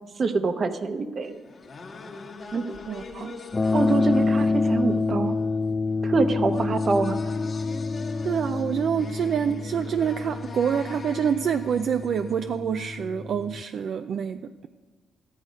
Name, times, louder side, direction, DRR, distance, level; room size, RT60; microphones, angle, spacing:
voice 1, 0.2-1.4 2.5-2.6 3.7-5.3 6.0-7.3, right 4 dB, 45° right, 9 dB, 0.9 m, -25 dB
sound 1, 1.2-13.1, left 4 dB, 45° left, 1.4 m, -42 dB
voice 2, 2.9-3.4 8.2-14.7, right 7 dB, 60° right, 8 dB, 0.4 m, -27 dB
sound 2, 3.5-13.6, left 3 dB, 25° left, 0.4 m, -28 dB
13.5 x 10.0 x 5.2 m, 1.4 s
cardioid pair, 90°, 0 cm